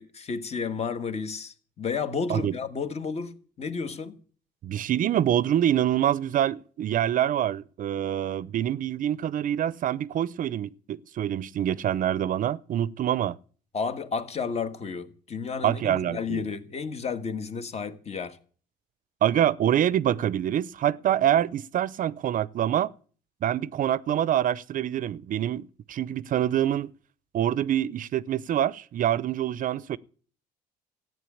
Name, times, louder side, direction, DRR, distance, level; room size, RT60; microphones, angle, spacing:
voice 1, 0.0-4.2 13.7-18.4, left 5 dB, 40° left, 1.7 m, -32 dB
voice 2, 4.6-13.4 15.6-16.4 19.2-22.9 23.4-26.9 27.3-30.0, right 11 dB, 55° right, 0.6 m, -26 dB
14.5 x 9.4 x 8.5 m
cardioid pair, 110°, 17 cm